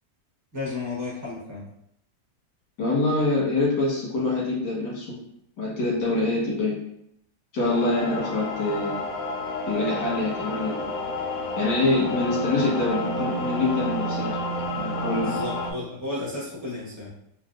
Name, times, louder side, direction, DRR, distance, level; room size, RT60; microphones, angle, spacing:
voice 1, 0.5-1.7 15.2-17.1, left 2 dB, 15° right, -7 dB, 0.7 m, -33 dB
voice 2, 2.8-5.2 5.6-6.8 7.5-9.0 9.7-10.8 11.6-14.3 14.7-15.4, left 2 dB, 85° left, -5 dB, 1.8 m, -25 dB
sound 1, 7.6-15.7, left 1 dB, 70° left, 0.9 m, -30 dB
4.1 x 2.1 x 2.4 m, 0.76 s
omnidirectional pair, 1.8 m